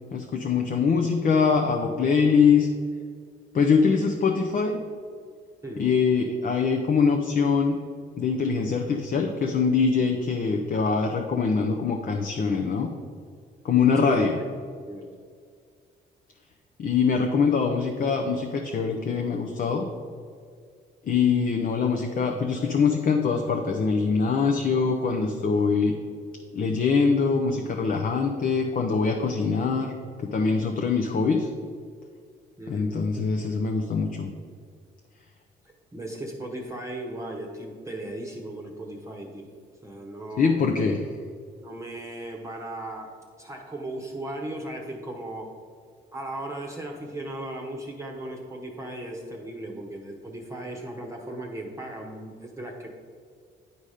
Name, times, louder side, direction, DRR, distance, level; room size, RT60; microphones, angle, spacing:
voice 1, 0.1-2.7 3.5-4.8 5.8-7.8 8.2-12.9 13.6-14.4 16.8-19.9 21.0-25.9 26.5-31.5 32.7-34.3 40.4-41.1, left 5 dB, 45° left, 2 dB, 0.7 m, -23 dB
voice 2, 32.6-32.9 35.9-39.5 39.8-40.7 41.6-43.1 43.4-45.5 46.1-52.9, right 1 dB, 15° right, 0 dB, 1.0 m, -36 dB
9.9 x 4.0 x 4.9 m, 2.1 s
cardioid pair, 90°, 20 cm